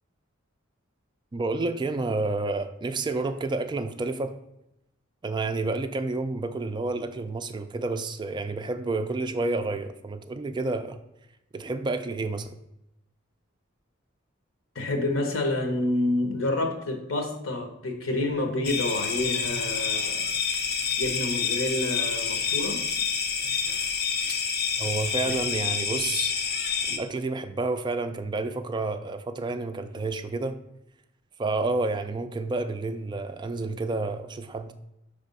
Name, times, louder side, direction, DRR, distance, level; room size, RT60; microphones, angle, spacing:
voice 1, 1.3-4.3 5.2-11.0 11.5-12.6 24.8-26.3 26.9-30.6 31.4-34.7, right 3 dB, 20° right, 9 dB, 0.3 m, -30 dB
voice 2, 14.7-20.3 21.0-22.8 25.2-25.4, left 2 dB, 80° left, 4 dB, 1.1 m, -28 dB
sound 1, 18.6-27.0, left 6 dB, 50° left, 0.6 m, -28 dB
5.4 x 3.4 x 5.3 m, 0.86 s
head